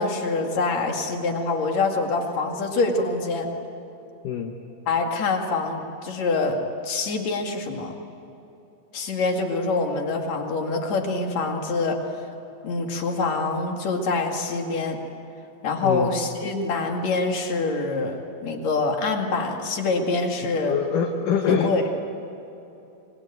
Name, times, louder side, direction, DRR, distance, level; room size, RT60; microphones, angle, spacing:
voice 1, 0.0-3.5 4.9-6.6 6.8-7.9 8.9-12.0 12.6-15.0 15.6-20.8 21.5-21.9, left 3 dB, 45° left, 2 dB, 3.0 m, -25 dB
voice 2, 20.7-21.7, left 7 dB, 65° left, 3 dB, 2.3 m, -24 dB
26.0 x 21.5 x 9.2 m, 2.9 s
omnidirectional pair, 4.8 m